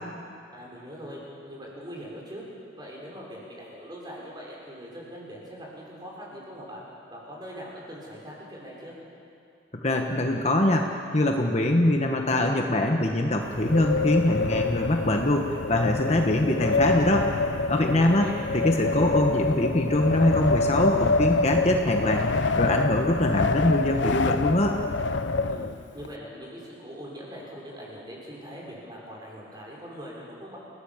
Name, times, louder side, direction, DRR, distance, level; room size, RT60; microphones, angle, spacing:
voice 1, 0.5-1.2 1.5-2.4 2.8-6.8 7.1-8.9 17.7-18.3 25.5-30.6, equal, 20° right, -4 dB, 6.1 m, -41 dB
voice 2, 9.8-17.3 17.7-18.3 18.5-22.3 22.6-24.8, left 1 dB, 35° left, 2 dB, 1.3 m, -23 dB
Wind, 13.4-26.1, left 3 dB, 70° left, 0.8 m, -26 dB
29.5 x 18.0 x 7.4 m, 2.5 s
head